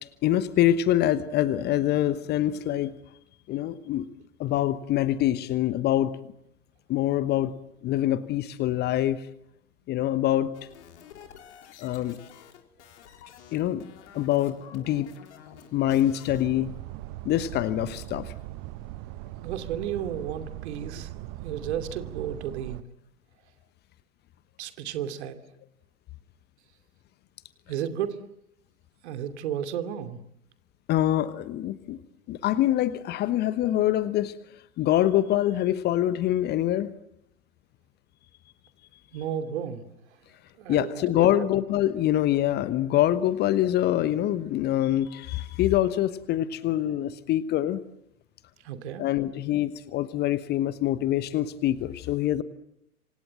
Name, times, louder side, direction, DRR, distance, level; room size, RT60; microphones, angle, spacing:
voice 1, 0.2-2.9 3.5-4.1 4.4-6.2 6.9-7.5 7.8-9.2 9.9-10.5 11.8-12.2 13.5-13.9 14.1-15.1 15.7-16.7 17.2-18.3 30.9-32.0 32.3-34.3 34.8-36.9 40.7-47.8 49.0-52.4, left 13 dB, 20° left, 15 dB, 1.1 m, -25 dB
sound 1, 10.5-16.4, left 8 dB, 50° left, 4.2 m, -50 dB
sound 2, 16.3-22.8, right 16 dB, 30° right, 0.9 m, -40 dB
voice 2, 19.4-22.8 24.6-25.4 27.7-28.2 29.0-30.2 39.1-39.8 40.6-41.4 48.6-49.1, right 9 dB, 45° right, 9 dB, 2.8 m, -33 dB
27.5 x 25.5 x 7.8 m, 0.80 s
figure-of-eight pair, 105°, 44 cm